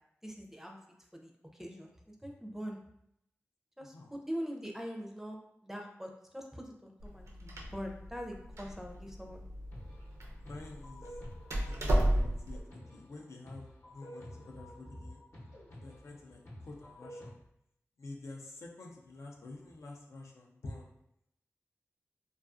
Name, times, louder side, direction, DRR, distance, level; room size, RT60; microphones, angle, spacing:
voice 1, 0.2-0.8 1.1-2.8 3.8-5.4 5.6-9.4, equal, 5° right, 2 dB, 0.4 m, -43 dB
voice 2, 3.8-4.1 10.4-11.1 11.6-12.6 12.9-15.2 15.7-17.4 18.0-20.9, left 2 dB, 80° left, -1 dB, 0.4 m, -49 dB
Door, 7.0-12.6, right 1 dB, 75° right, 0.4 m, -34 dB
sound 1, 9.7-17.3, equal, 65° left, 0.9 m, -51 dB
2.4 x 2.3 x 2.4 m, 0.77 s
cardioid pair, 50°, 5 cm